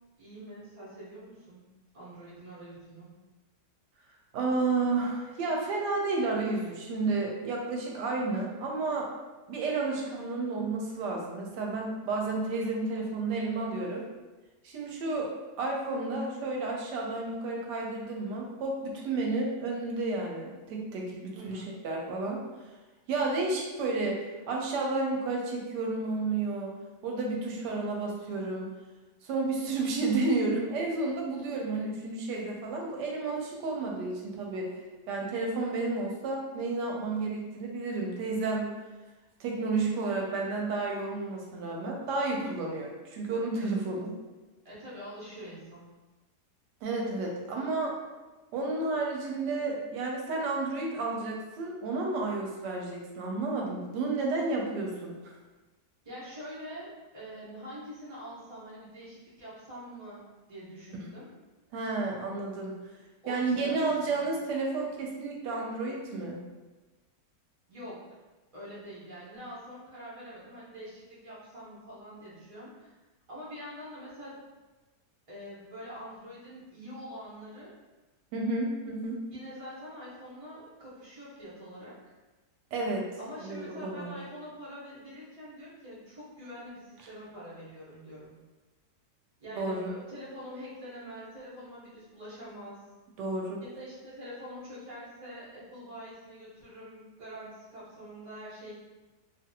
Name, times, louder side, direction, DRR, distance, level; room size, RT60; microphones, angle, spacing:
voice 1, 0.2-1.6 1.9-3.1 21.3-21.7 44.6-45.9 56.0-60.2 60.5-61.3 63.2-64.2 67.7-68.0 68.5-72.9 73.3-74.4 75.3-77.7 79.3-82.0 83.2-88.4 89.4-92.8 93.7-98.7, equal, 25° right, -10 dB, 0.9 m, -45 dB
voice 2, 4.3-9.1 9.5-14.0 14.6-15.3 15.6-22.4 23.1-26.7 27.0-28.7 29.2-34.7 35.1-38.7 39.4-44.2 46.8-47.9 48.5-55.3 60.9-61.1 61.7-62.8 63.3-66.4 78.3-79.2 82.7-83.1 83.4-84.1 89.5-89.9 93.2-93.6, right 3 dB, 85° right, -1 dB, 1.2 m, -31 dB
2.7 x 2.5 x 2.7 m, 1.2 s
omnidirectional pair, 1.8 m